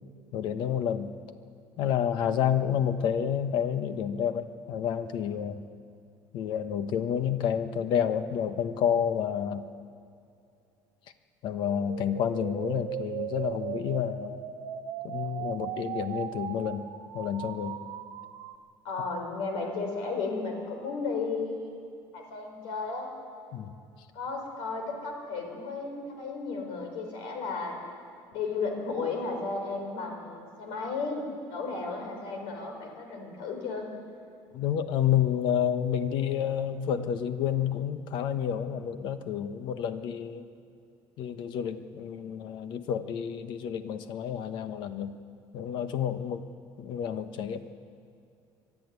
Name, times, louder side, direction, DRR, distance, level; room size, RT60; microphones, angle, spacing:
voice 1, 0.3-1.1 1.8-5.6 6.3-9.7 11.4-14.4 15.0-16.9 17.1-17.8 23.5-23.7 34.5-40.4 41.2-45.2 45.5-46.5 46.8-47.6, left 9 dB, 60° left, 10 dB, 1.2 m, -29 dB
sound 1, 11.6-18.6, right 11 dB, 75° right, 1.0 m, -38 dB
voice 2, 18.8-21.7 22.1-23.1 24.1-27.8 28.3-31.2 31.5-33.9, left 4 dB, 80° left, 3 dB, 4.7 m, -34 dB
23.0 x 12.0 x 9.6 m, 2.4 s
cardioid pair, 155°, 9 cm